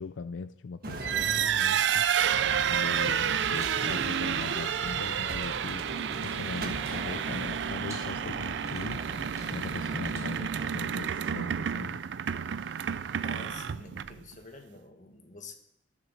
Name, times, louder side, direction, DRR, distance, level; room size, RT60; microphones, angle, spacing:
voice 1, 0.0-2.1 2.6-5.9 6.2-12.0, left 4 dB, 90° left, 13 dB, 0.4 m, -40 dB
sound 1, 0.8-10.2 10.9-11.4 12.5-13.2, right 2 dB, 55° right, 1.5 m, -43 dB
sound 2, 0.9-14.3, right 8 dB, 70° right, 0.4 m, -30 dB
sound 3, 2.3-10.7, right 1 dB, 20° right, 4.6 m, -42 dB
voice 2, 13.2-15.6, left 3 dB, 45° left, 5 dB, 1.5 m, -47 dB
14.0 x 6.9 x 6.4 m, 0.74 s
head